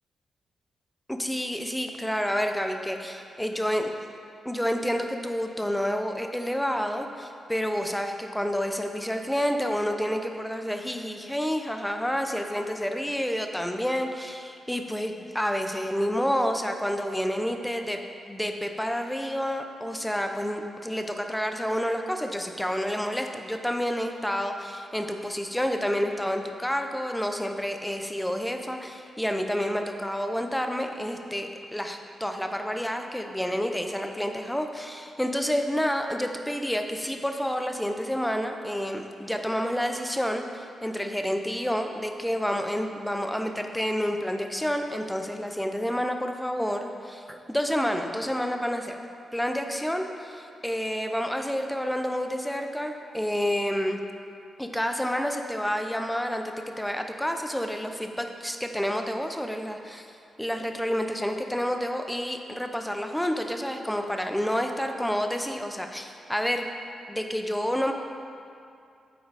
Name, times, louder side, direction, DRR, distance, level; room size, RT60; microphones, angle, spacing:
voice 1, 1.1-3.9 4.4-49.0 49.3-54.0 54.6-60.1 60.4-66.7 67.1-67.9, equal, 5° left, 5 dB, 0.6 m, -29 dB
9.2 x 3.9 x 4.8 m, 2.5 s
cardioid pair, 70°, 0 cm